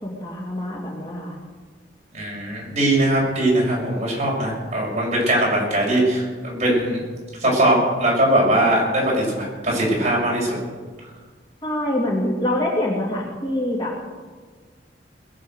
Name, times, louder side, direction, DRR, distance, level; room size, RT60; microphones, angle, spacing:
voice 1, 0.0-1.4 11.6-14.1, left 1 dB, 25° left, -2 dB, 2.7 m, -25 dB
voice 2, 2.1-7.0 7.4-10.5, right 1 dB, 40° right, -4 dB, 6.6 m, -20 dB
21.5 x 7.8 x 8.1 m, 1.5 s
head